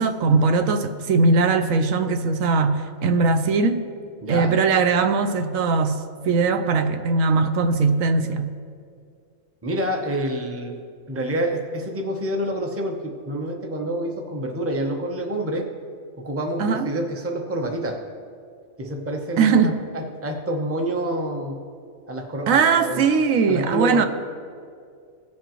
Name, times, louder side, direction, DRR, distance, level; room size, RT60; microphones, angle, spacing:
voice 1, 0.0-3.8 4.3-8.5 16.6-16.9 19.4-19.8 22.5-24.1, right 4 dB, 80° right, 8 dB, 1.1 m, -20 dB
voice 2, 4.2-4.5 9.6-10.8 11.1-15.7 16.2-18.0 18.8-21.6 22.1-23.0 23.5-24.0, right 1 dB, 15° right, 2 dB, 0.7 m, -27 dB
18.0 x 7.5 x 3.0 m, 2.3 s
omnidirectional pair, 1.4 m